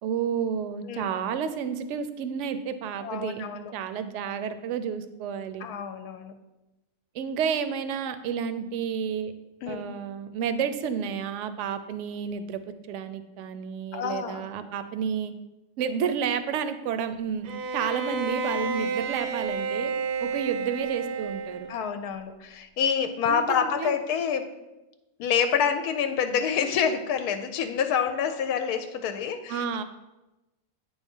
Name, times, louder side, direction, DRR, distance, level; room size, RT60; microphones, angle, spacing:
voice 1, 0.0-5.7 7.1-9.3 9.7-12.6 12.9-15.3 15.8-19.9 20.2-21.7 23.3-24.0 29.5-29.8, right 7 dB, 65° right, 11 dB, 0.8 m, -31 dB
voice 2, 3.0-3.6 5.6-6.3 9.6-9.8 13.9-14.5 21.7-24.5 25.2-29.6, left 7 dB, 90° left, 8 dB, 1.1 m, -27 dB
Bowed string instrument, 17.4-21.9, right 4 dB, 90° right, 1.2 m, -30 dB
8.5 x 3.5 x 5.4 m, 1.0 s
omnidirectional pair, 1.6 m